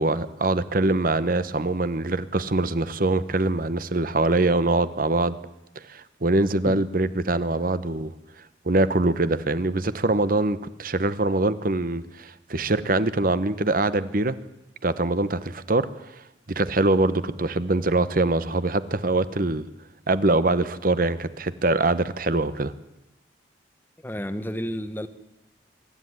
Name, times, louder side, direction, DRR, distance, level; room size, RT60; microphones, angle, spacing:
voice 1, 0.0-5.4 5.9-8.1 8.6-14.4 14.8-15.9 16.5-19.7 20.1-22.7, right 2 dB, 50° right, 1.0 m, -23 dB
voice 2, 24.0-25.1, equal, 10° left, 1.1 m, -31 dB
24.5 x 12.5 x 9.6 m
head